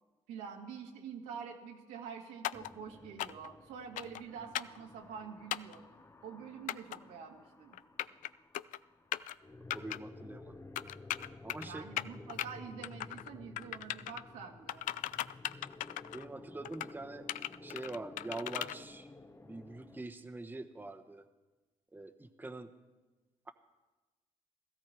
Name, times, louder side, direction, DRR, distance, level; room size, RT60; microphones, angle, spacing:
voice 1, 0.3-5.8 6.2-7.8 11.6-14.9, right 6 dB, 85° right, 1 dB, 2.0 m, -46 dB
sound 1, 2.4-2.7 3.2-3.5 4.0-4.2 4.5-4.8 5.5-5.8 6.7-7.0 7.7-8.3 8.5-8.8 9.1-9.3 9.7-10.0 10.8-11.7 12.0-12.5 12.8-13.3 13.6-14.2 14.7-16.3 16.6-16.9 17.3-18.8, left 14 dB, 70° left, 0.4 m, -38 dB
sound 2, 2.5-20.0, left 2 dB, 20° left, 1.0 m, -54 dB
voice 2, 9.7-10.6 11.4-11.8 16.1-17.3 17.6-19.1 19.4-21.2 21.9-22.7, right 2 dB, 15° right, 7 dB, 1.1 m, -44 dB
17.0 x 14.0 x 4.6 m, 1.2 s
supercardioid pair, 60°, 14 cm